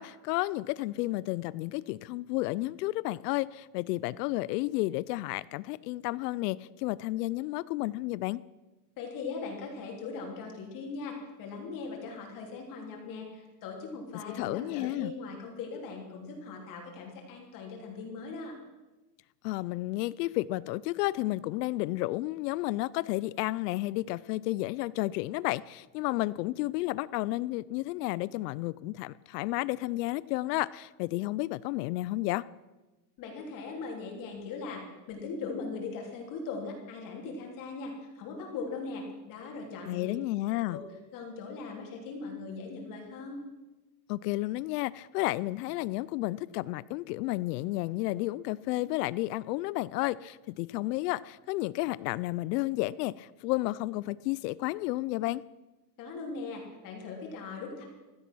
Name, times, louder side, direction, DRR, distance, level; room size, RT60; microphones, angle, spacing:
voice 1, 0.0-8.4 14.3-15.1 19.4-32.4 39.9-40.8 44.1-55.4, left 18 dB, 70° left, 19 dB, 0.6 m, -32 dB
voice 2, 9.0-18.5 33.2-34.8 35.1-40.2 40.7-40.8 41.1-43.4 56.0-57.8, left 4 dB, 40° left, 0 dB, 3.3 m, -39 dB
16.0 x 12.5 x 6.2 m, 1.1 s
supercardioid pair, 160°, 50 cm